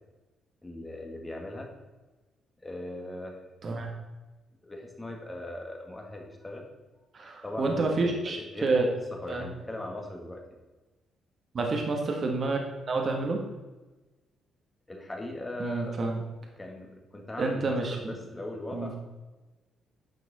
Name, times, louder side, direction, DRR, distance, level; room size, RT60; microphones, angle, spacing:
voice 1, 0.6-1.7 2.6-3.4 4.6-6.7 7.4-10.6 14.9-16.0 16.6-19.0, left 1 dB, 15° left, 1 dB, 1.8 m, -39 dB
voice 2, 7.1-8.9 9.3-9.5 11.5-13.4 15.6-16.2 17.4-18.1 18.7-18.9, right 3 dB, 45° right, 2 dB, 1.5 m, -29 dB
9.3 x 6.0 x 4.2 m, 1.2 s
cardioid pair, 90°, 0 cm